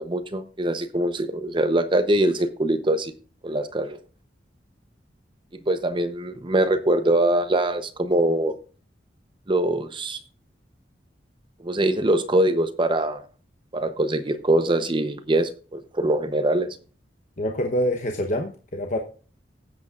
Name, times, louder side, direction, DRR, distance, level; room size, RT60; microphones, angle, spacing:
voice 1, 0.0-3.1 3.4-4.0 5.7-8.6 9.5-10.2 11.6-13.2 13.7-16.7, right 1 dB, 30° right, 10 dB, 0.8 m, -23 dB
voice 2, 17.4-19.0, equal, 45° left, 3 dB, 1.0 m, -26 dB
19.0 x 8.2 x 2.5 m, 0.39 s
head